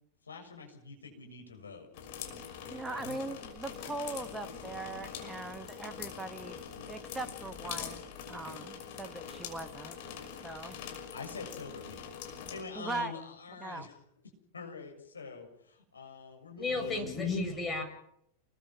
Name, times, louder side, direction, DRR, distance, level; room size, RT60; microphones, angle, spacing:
voice 1, 0.2-1.9 2.6-3.2 11.1-14.0 14.5-17.0, left 4 dB, 75° left, 3 dB, 7.0 m, -46 dB
sound 1, 1.9-12.6, left 7 dB, 50° left, 6.0 m, -44 dB
voice 2, 2.7-6.6 6.9-10.0 10.4-10.8 12.8-13.1 13.6-13.9, right 2 dB, 10° right, 10 dB, 1.4 m, -40 dB
voice 3, 16.6-17.8, left 3 dB, 15° left, 3 dB, 7.9 m, -32 dB
29.0 x 21.5 x 6.0 m, 0.74 s
figure-of-eight pair, 90°, 0 cm